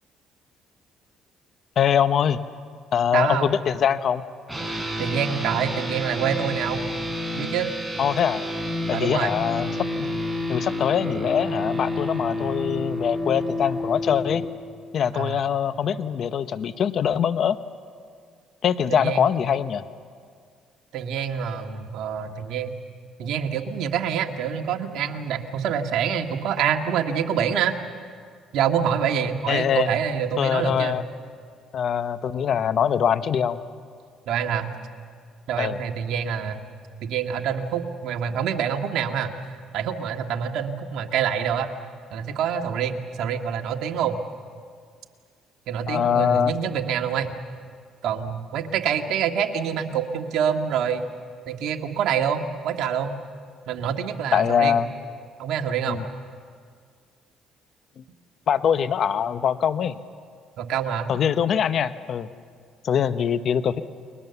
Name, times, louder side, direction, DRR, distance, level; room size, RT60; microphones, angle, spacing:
voice 1, 1.8-2.4 2.9-4.2 8.0-8.4 8.9-9.7 10.0-10.1 10.5-14.4 14.9-17.6 18.6-19.8 29.5-29.9 30.4-31.0 31.7-33.6 35.6-35.8 45.9-46.5 54.3-54.9 55.9-56.0 58.5-60.0 61.1-62.3 62.8-63.8, left 8 dB, 55° left, 12 dB, 1.0 m, -23 dB
voice 2, 3.1-3.5 5.0-6.8 7.4-7.7 8.9-9.4 15.1-15.5 18.9-19.3 20.9-22.8 23.2-27.7 28.5-31.0 34.3-34.7 35.5-36.6 37.0-41.7 42.1-44.2 45.7-47.3 48.0-51.1 51.5-53.1 53.7-54.8 55.4-56.0 60.6-61.1, right 8 dB, 75° right, 4 dB, 1.8 m, -26 dB
sound 1, 4.5-14.4, left 1 dB, 5° right, 5.6 m, -29 dB
30.0 x 22.0 x 7.0 m, 2.1 s
cardioid pair, 90°, 0 cm